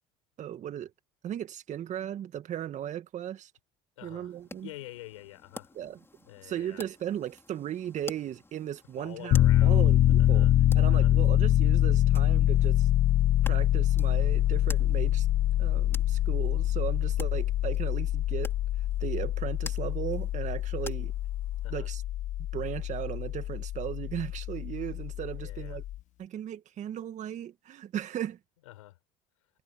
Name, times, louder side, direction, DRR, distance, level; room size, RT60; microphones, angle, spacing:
voice 1, 0.4-0.9 1.2-3.5 4.0-4.7 5.8-6.0 6.4-10.5 10.7-12.9 13.5-15.3 15.6-18.5 19.0-21.1 21.7-22.0 22.5-25.8 26.2-28.4, right 11 dB, 50° right, 1.9 m, -36 dB
voice 2, 4.0-5.7 6.3-6.8 9.0-11.1 21.6-21.9 25.4-25.8 28.6-29.0, left 16 dB, 85° left, 4.7 m, -47 dB
sound 1, 4.3-21.7, left 2 dB, 15° left, 5.7 m, -50 dB
Piano, 9.3-26.0, left 13 dB, 50° left, 0.8 m, -25 dB
hypercardioid pair, 75°, 16 cm